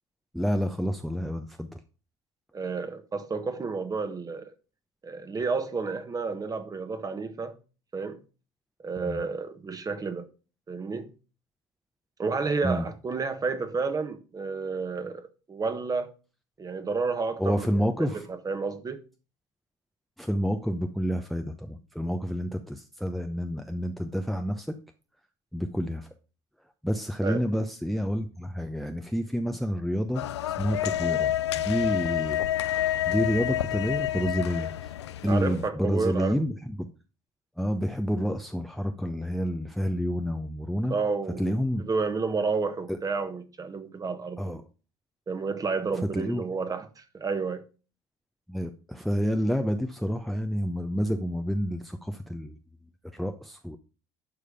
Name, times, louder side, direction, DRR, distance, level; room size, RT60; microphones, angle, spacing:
voice 1, 0.3-1.8 9.1-9.2 12.6-12.8 17.4-18.3 20.2-24.8 25.5-26.1 26.8-30.3 30.6-31.3 31.6-32.4 33.1-34.9 35.2-36.9 37.6-41.0 41.4-41.8 42.9-43.0 44.4-44.6 46.1-46.4 48.5-52.6 53.0-53.8, equal, ahead, 0.8 m, -29 dB
voice 2, 2.5-4.5 5.0-7.6 7.9-8.2 8.8-10.3 10.7-11.1 12.2-16.1 16.6-17.7 18.0-19.0 27.2-27.4 35.3-36.4 40.9-41.5 41.8-44.6 45.3-47.6, right 4 dB, 25° right, 1.5 m, -30 dB
sound 1, 30.1-35.7, left 12 dB, 75° left, 0.5 m, -29 dB
11.5 x 5.0 x 5.1 m
figure-of-eight pair, 60°, 14 cm